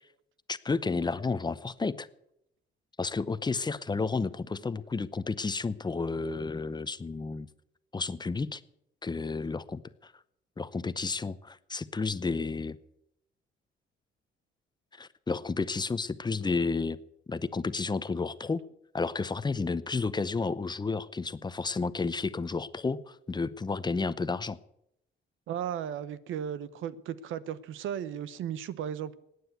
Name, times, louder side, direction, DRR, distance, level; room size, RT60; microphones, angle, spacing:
voice 1, 0.5-2.1 3.0-7.5 7.9-8.6 9.0-10.1 10.6-12.8 14.9-17.0 17.3-18.6 18.9-24.6, left 4 dB, 20° left, 15 dB, 0.7 m, -31 dB
voice 2, 25.5-29.2, right 9 dB, 80° right, 16 dB, 0.9 m, -35 dB
14.5 x 9.5 x 8.1 m, 0.78 s
cardioid pair, 90°, 20 cm